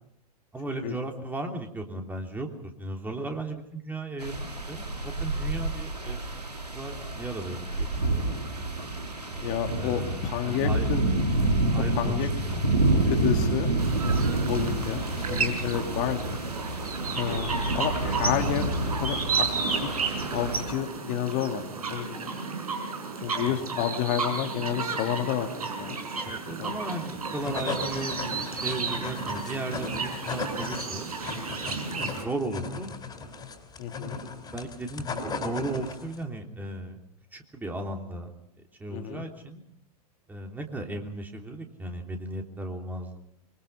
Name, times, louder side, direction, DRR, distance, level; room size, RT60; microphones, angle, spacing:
voice 1, 0.5-6.2 6.7-8.4 9.8-10.9 11.7-12.8 23.5-23.6 26.2-32.9 34.5-37.0 37.3-38.3 38.8-39.6 40.3-43.2, right 2 dB, 10° right, 2 dB, 3.2 m, -36 dB
sound 1, 4.2-20.6, right 2 dB, 85° right, 2.6 m, -28 dB
voice 2, 9.4-11.0 12.0-12.3 13.1-13.7 14.5-16.4 17.1-17.5 17.7-19.5 19.7-19.9 20.3-22.3 23.2-25.5 25.8-26.0 26.6-26.8 33.8-34.2 38.9-39.3, left 10 dB, 40° left, 5 dB, 2.2 m, -30 dB
sound 2, 13.8-32.2, right 4 dB, 70° right, 5.4 m, -32 dB
sound 3, 27.1-36.2, left 4 dB, 20° left, 4.6 m, -36 dB
24.5 x 24.0 x 5.6 m, 0.71 s
figure-of-eight pair, 95°, 20 cm